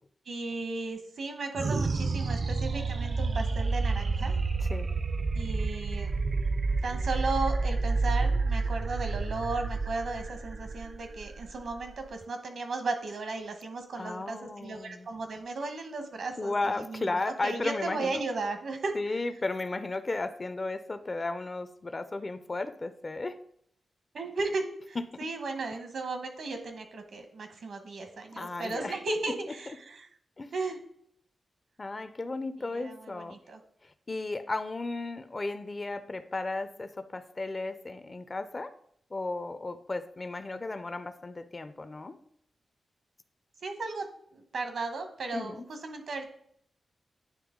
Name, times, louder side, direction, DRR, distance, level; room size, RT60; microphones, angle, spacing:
voice 1, 0.3-4.3 5.3-6.1 6.8-16.5 16.9-18.9 24.1-30.1 30.5-30.8 32.7-33.6 43.6-44.1 44.3-46.3, right 3 dB, 70° right, 6 dB, 1.0 m, -35 dB
sound 1, 1.5-12.2, right 3 dB, 45° right, 0.4 m, -29 dB
voice 2, 4.6-4.9 14.0-15.1 16.4-18.3 18.9-23.4 25.0-25.3 28.3-29.0 29.3-29.4 30.4-30.5 31.8-33.4 33.8-38.7 39.1-42.2 45.3-45.7, left 2 dB, 30° left, 11 dB, 0.4 m, -34 dB
9.6 x 3.2 x 3.7 m, 0.68 s
wide cardioid pair, 130°, 0 cm